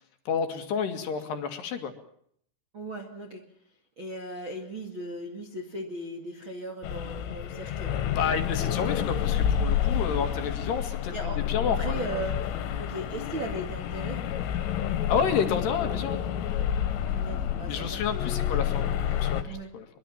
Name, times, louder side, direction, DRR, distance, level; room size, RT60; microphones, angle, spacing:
voice 1, 0.3-1.9 8.2-12.0 15.1-16.2 17.7-18.9 19.1-19.9, left 7 dB, 60° left, 6 dB, 3.8 m, -30 dB
voice 2, 2.7-3.4 4.0-8.0 11.1-12.4 12.8-14.2 16.9-18.6 19.4-19.7, right 1 dB, 40° right, 3 dB, 1.8 m, -37 dB
sound 1, 6.8-19.4, left 9 dB, 80° left, 4.2 m, -29 dB
23.5 x 23.5 x 7.3 m, 0.68 s
omnidirectional pair, 5.8 m